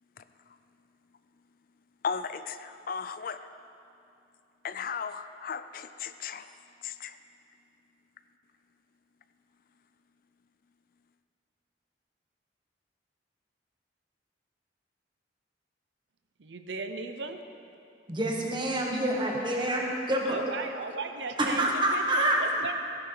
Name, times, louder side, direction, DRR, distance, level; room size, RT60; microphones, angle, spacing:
voice 1, 2.0-3.5 4.6-6.5 6.8-7.2, left 6 dB, 50° left, 11 dB, 0.4 m, -36 dB
voice 2, 16.4-17.4 20.3-22.7, right 3 dB, 80° right, 7 dB, 0.7 m, -36 dB
voice 3, 18.1-20.4 21.4-22.4, right 1 dB, 25° right, -1 dB, 1.5 m, -27 dB
15.0 x 10.5 x 4.0 m, 2.7 s
head